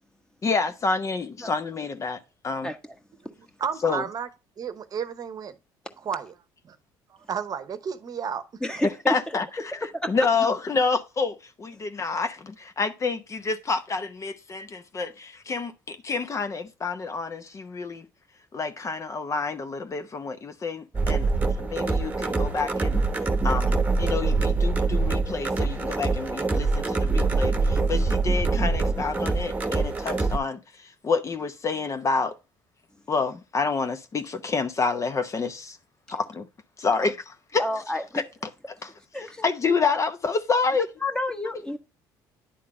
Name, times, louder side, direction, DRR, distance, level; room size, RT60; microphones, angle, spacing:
voice 1, 0.4-2.2 2.4-2.7 3.8-4.0 9.1-9.4 10.1-18.0 18.5-21.3 21.6-23.0 23.4-32.4 33.1-35.8 36.1-36.5 36.8-37.7 38.1-38.2 38.7-38.9 39.2-40.9, left 4 dB, 35° left, 0.8 m, -28 dB
voice 2, 2.6-2.9 8.6-9.1 10.2-10.3 37.6-38.2 39.1-39.5 41.0-41.8, left 1 dB, 10° left, 1.3 m, -30 dB
voice 3, 3.6-4.3 4.6-5.6 6.0-6.3 6.6-6.8 7.1-8.4 8.7-8.8, right 7 dB, 45° right, 0.9 m, -32 dB
sound 1, 20.9-30.4, right 3 dB, 15° right, 1.1 m, -24 dB
10.0 x 3.8 x 4.7 m
supercardioid pair, 80°, 9 cm